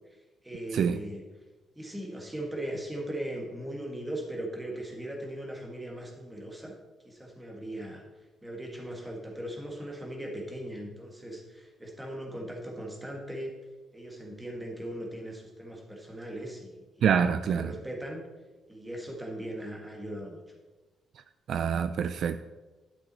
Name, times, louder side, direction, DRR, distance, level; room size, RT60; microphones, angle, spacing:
voice 1, 0.4-1.2 1.8-6.7 7.0-8.0 8.4-13.5 13.9-18.2 18.7-20.4, right 1 dB, 10° right, 1.5 m, -39 dB
voice 2, 17.0-17.7 21.5-22.4, right 7 dB, 55° right, 0.3 m, -26 dB
11.0 x 6.1 x 4.0 m
cardioid pair, 165°, 0 cm